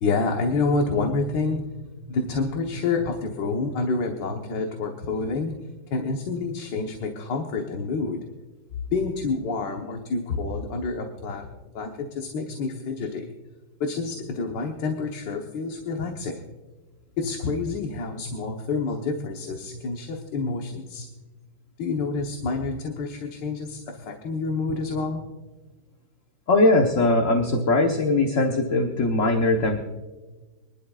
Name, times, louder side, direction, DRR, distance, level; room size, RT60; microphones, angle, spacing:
voice 1, 0.0-8.4 8.9-11.5 11.7-13.3 13.8-16.4 17.2-21.1 21.8-25.3, left 3 dB, 65° left, 2 dB, 1.7 m, -28 dB
voice 2, 26.5-29.8, left 2 dB, 45° left, 3 dB, 1.3 m, -20 dB
24.5 x 11.5 x 2.4 m, 1.2 s
omnidirectional pair, 2.2 m